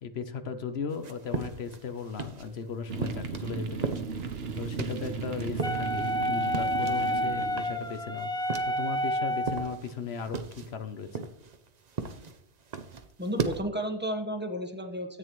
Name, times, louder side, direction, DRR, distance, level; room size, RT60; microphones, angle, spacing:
voice 1, 0.0-8.3 8.7-11.3, left 6 dB, 70° left, 8 dB, 1.0 m, -37 dB
sound 1, 0.9-2.6 3.0-7.2 7.5-9.1 9.4-13.6, right 4 dB, 45° right, 0.7 m, -37 dB
sound 2, 2.9-7.9, right 5 dB, 65° right, 1.1 m, -36 dB
Wind instrument woodwind instrument, 5.6-9.8, equal, 5° left, 0.4 m, -29 dB
voice 2, 13.2-15.2, equal, 10° right, 5 dB, 1.0 m, -33 dB
13.5 x 8.5 x 3.1 m, 0.72 s
omnidirectional pair, 1.1 m